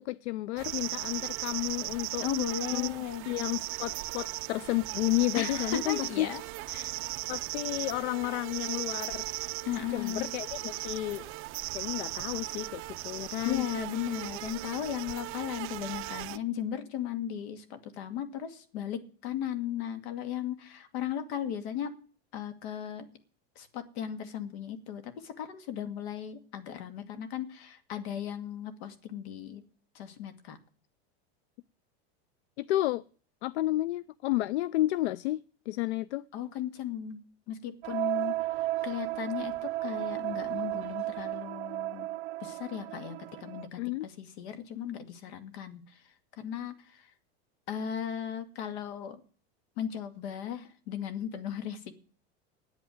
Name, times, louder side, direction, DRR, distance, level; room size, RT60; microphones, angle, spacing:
voice 1, 0.0-2.3 2.7-2.9 3.2-6.3 7.3-9.3 9.9-11.3 11.7-13.6 32.6-33.0 33.4-36.3 43.8-44.1, left 17 dB, 90° left, 0.5 m, -31 dB
sound 1, 0.6-16.4, right 19 dB, 40° right, 0.5 m, -37 dB
voice 2, 2.2-3.2 5.3-6.4 6.7-6.9 9.6-10.3 13.4-22.0 22.3-23.0 23.6-29.6 29.9-30.6 36.3-37.2 37.5-38.4 38.8-42.1 42.4-46.0 46.4-47.1 47.7-49.2 49.8-52.1, left 9 dB, 70° left, 2.3 m, -36 dB
sound 2, 37.8-43.7, right 16 dB, 85° right, 0.7 m, -34 dB
9.1 x 8.8 x 9.5 m
supercardioid pair, 130°, 33 cm